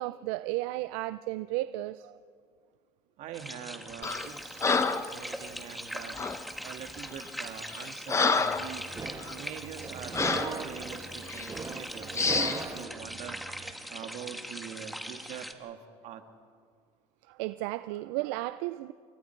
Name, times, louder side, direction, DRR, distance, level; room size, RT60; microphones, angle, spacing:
voice 1, 0.0-2.2 17.3-18.9, right 17 dB, 85° right, 13 dB, 0.5 m, -34 dB
voice 2, 3.2-6.2 6.6-8.9 9.3-13.4 13.9-15.8 16.0-16.2, right 9 dB, 60° right, 6 dB, 2.0 m, -44 dB
sound 1, 3.3-15.5, equal, ahead, 1.7 m, -42 dB
Breathing, 4.0-4.3 4.6-5.1 6.2-6.4 7.1-7.3 7.7-8.7 9.2-9.4 10.1-10.6 11.3-11.5 12.1-12.6, left 4 dB, 20° left, 1.1 m, -28 dB
sound 2, 8.6-13.7, right 4 dB, 25° right, 1.7 m, -39 dB
28.5 x 24.0 x 4.6 m, 2.1 s
supercardioid pair, 110°, 13 cm